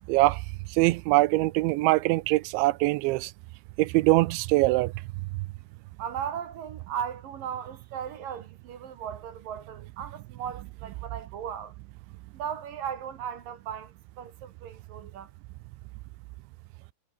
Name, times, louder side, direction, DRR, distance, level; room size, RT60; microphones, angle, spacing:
voice 1, 0.1-0.4 0.7-3.3 3.8-4.9, right 21 dB, 80° right, 2.9 m, -23 dB
voice 2, 6.0-11.7 12.3-15.3, right 8 dB, 55° right, 3.4 m, -37 dB
omnidirectional pair, 5.4 m